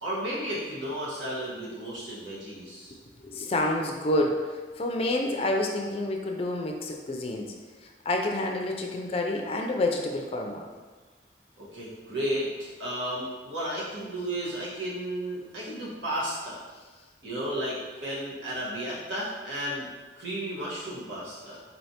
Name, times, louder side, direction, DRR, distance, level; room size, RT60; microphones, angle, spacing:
voice 1, 0.0-2.9 11.6-16.6 17.2-19.9 20.2-21.6, right 1 dB, 85° right, -7 dB, 1.3 m, -33 dB
voice 2, 3.2-7.5 7.8-10.7, left 1 dB, 30° left, 2 dB, 0.3 m, -28 dB
4.2 x 3.2 x 2.8 m, 1.4 s
head